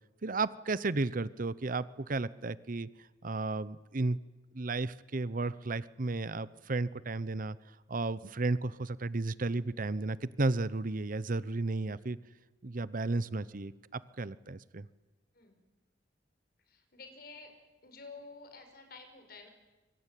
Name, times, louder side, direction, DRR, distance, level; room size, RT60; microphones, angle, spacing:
voice 1, 0.2-2.9 3.2-4.2 4.5-7.6 7.9-12.2 12.6-14.9, right 3 dB, 50° right, 17 dB, 0.8 m, -33 dB
voice 2, 16.7-17.6 17.8-19.5, left 3 dB, 55° left, 6 dB, 5.6 m, -51 dB
24.5 x 24.0 x 9.2 m, 1.2 s
head